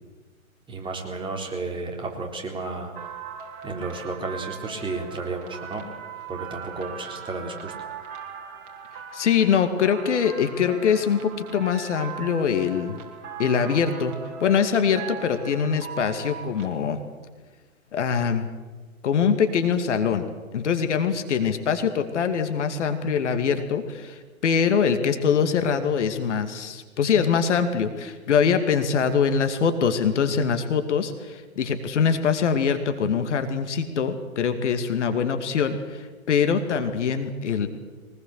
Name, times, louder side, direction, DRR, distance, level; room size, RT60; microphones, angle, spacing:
voice 1, 0.7-2.9 3.6-5.8 6.3-7.9, right 3 dB, 10° right, 1 dB, 3.7 m, -32 dB
sound 1, 2.9-16.7, right 7 dB, 40° right, 4.3 m, -39 dB
voice 2, 9.1-13.0 13.4-14.1 14.4-17.0 17.9-18.4 19.0-20.2 20.5-37.7, left 6 dB, 55° left, 8 dB, 2.5 m, -23 dB
23.5 x 20.0 x 8.2 m, 1.3 s
figure-of-eight pair, 125°, 42 cm